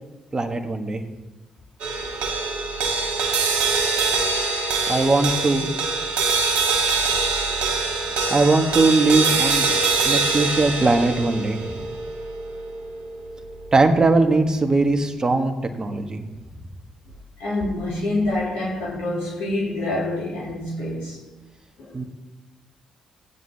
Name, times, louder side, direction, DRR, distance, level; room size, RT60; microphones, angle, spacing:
voice 1, 0.3-1.0 4.9-5.7 8.3-9.7 10.0-11.7 13.7-16.2 21.9-22.0, right 3 dB, 30° right, 1.5 m, -20 dB
sound 1, 1.8-14.3, right 4 dB, 65° right, 1.7 m, -24 dB
voice 2, 2.0-2.3 17.4-21.2 21.8-22.0, left 2 dB, 70° left, 3.1 m, -27 dB
18.5 x 9.5 x 2.8 m
figure-of-eight pair, 40°, 2 cm